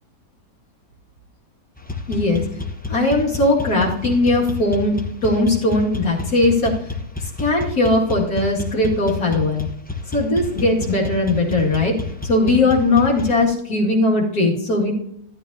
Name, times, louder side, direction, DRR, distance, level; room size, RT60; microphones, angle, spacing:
sound 1, 1.8-13.4, left 4 dB, 10° left, 0.5 m, -30 dB
voice 1, 2.1-2.4 2.9-6.7 7.4-9.7 10.1-11.9 12.2-14.9, left 2 dB, 60° left, -3 dB, 2.6 m, -19 dB
12.0 x 11.5 x 2.7 m, 0.73 s
omnidirectional pair, 1.8 m